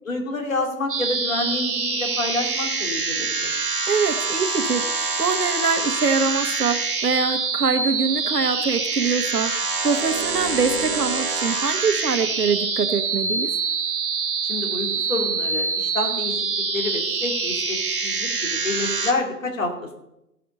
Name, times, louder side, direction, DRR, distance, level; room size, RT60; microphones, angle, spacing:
voice 1, 0.0-3.6 14.5-16.5 16.7-17.8 18.0-19.9, left 2 dB, 55° left, 3 dB, 2.9 m, -28 dB
sound 1, 0.9-19.1, right 4 dB, 35° right, 1.4 m, -25 dB
voice 2, 3.8-13.5, right 5 dB, 70° right, 8 dB, 1.4 m, -24 dB
16.0 x 5.8 x 5.4 m, 0.86 s
figure-of-eight pair, 160°, 48 cm